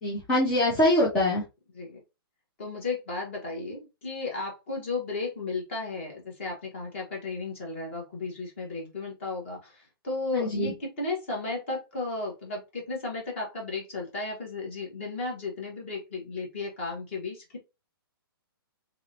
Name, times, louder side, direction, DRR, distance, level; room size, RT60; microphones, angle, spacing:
voice 1, 0.0-1.4 10.3-10.7, left 1 dB, 5° left, -6 dB, 0.3 m, -24 dB
voice 2, 2.6-17.6, left 3 dB, 30° left, 0 dB, 1.3 m, -34 dB
3.0 x 2.9 x 2.7 m, 0.25 s
hypercardioid pair, 180°, 13 cm